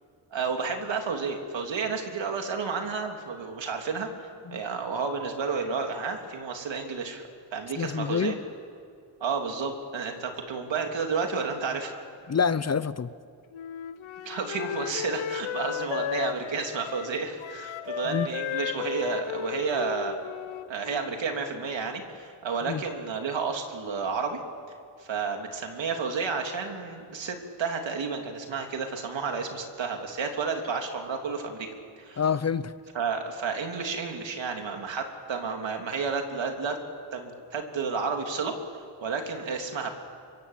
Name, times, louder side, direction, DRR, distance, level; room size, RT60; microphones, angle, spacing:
voice 1, 0.3-4.1 4.5-8.4 9.2-12.0 14.2-20.2 20.7-24.4 25.0-31.7 32.0-32.2 32.9-36.8 37.1-39.9, right 5 dB, 70° right, 4 dB, 3.0 m, -31 dB
voice 2, 7.8-8.3 12.3-13.1 18.1-18.3 22.7-22.8 32.2-32.7, left 6 dB, 35° left, 16 dB, 0.7 m, -27 dB
Wind instrument woodwind instrument, 13.5-21.3, left 9 dB, 85° left, 0.9 m, -34 dB
24.5 x 24.0 x 7.4 m, 2.4 s
cardioid pair, 75°, 46 cm